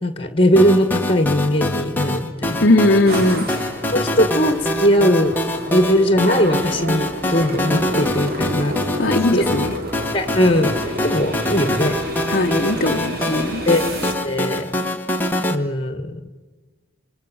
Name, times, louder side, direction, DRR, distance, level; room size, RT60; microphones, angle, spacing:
voice 1, 0.0-2.6 3.9-5.4 5.7-8.8 9.3-9.5 10.1-12.0 13.7-14.7 15.5-16.2, equal, 25° left, 9 dB, 2.0 m, -19 dB
sound 1, 0.6-15.6, left 1 dB, 10° left, 1.3 m, -25 dB
voice 2, 2.6-3.5 9.0-9.8 12.3-13.6, left 2 dB, 50° left, 2 dB, 0.9 m, -18 dB
sound 2, 3.1-14.1, right 1 dB, 50° right, 2.9 m, -30 dB
27.5 x 25.5 x 7.2 m, 1.3 s
head